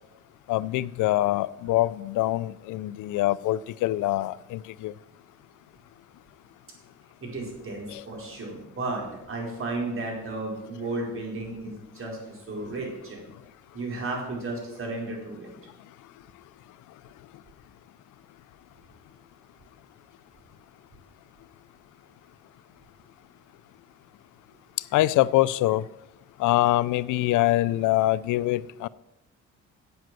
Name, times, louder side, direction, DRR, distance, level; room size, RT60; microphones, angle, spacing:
voice 1, 0.5-4.9 7.9-8.0 24.9-25.8 26.4-28.9, left 16 dB, 80° left, 0.5 m, -24 dB
voice 2, 7.2-13.2 13.7-15.5, right 2 dB, 45° right, 4.6 m, -34 dB
8.8 x 7.9 x 7.6 m
cardioid pair, 90°, 30 cm